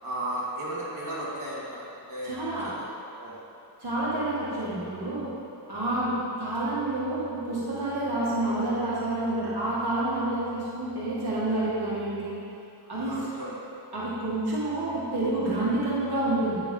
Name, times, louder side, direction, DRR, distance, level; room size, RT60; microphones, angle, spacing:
voice 1, 0.0-2.9 3.2-3.4 12.8-13.6, right 1 dB, 50° right, -8 dB, 1.9 m, -35 dB
voice 2, 2.2-2.7 3.8-5.3 5.7-12.3 12.9-13.2 13.9-16.6, right 2 dB, 65° right, -8 dB, 2.0 m, -28 dB
9.3 x 6.0 x 3.7 m, 2.7 s
wide cardioid pair, 115°, 42 cm